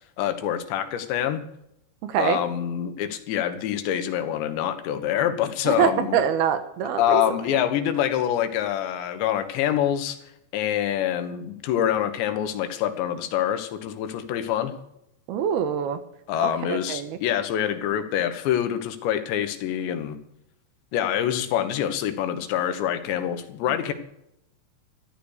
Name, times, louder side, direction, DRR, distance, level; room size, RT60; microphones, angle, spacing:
voice 1, 0.2-1.4 2.2-6.2 7.0-10.2 10.5-14.7 16.3-20.2 20.9-23.9, left 10 dB, 85° left, 9 dB, 3.6 m, -26 dB
voice 2, 2.0-2.4 5.7-7.2 15.3-16.0 16.4-17.2, right 8 dB, 75° right, 10 dB, 2.8 m, -24 dB
14.5 x 12.0 x 6.5 m, 0.79 s
omnidirectional pair, 5.0 m